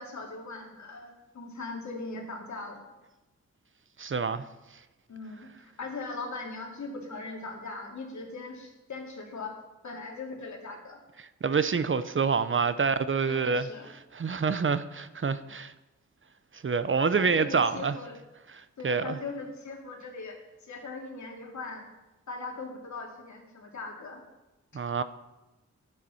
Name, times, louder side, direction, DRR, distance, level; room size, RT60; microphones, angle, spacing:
voice 1, 0.0-2.8 5.1-9.5 9.8-11.0 13.3-13.9 17.2-18.2 18.8-21.9 22.3-24.2, left 3 dB, 70° left, 2.6 m, -40 dB
voice 2, 4.0-4.5 11.4-15.7 16.5-17.9 18.5-19.2 24.7-25.0, right 5 dB, 45° right, 0.6 m, -27 dB
10.5 x 9.4 x 5.6 m
cardioid pair, 70°, 29 cm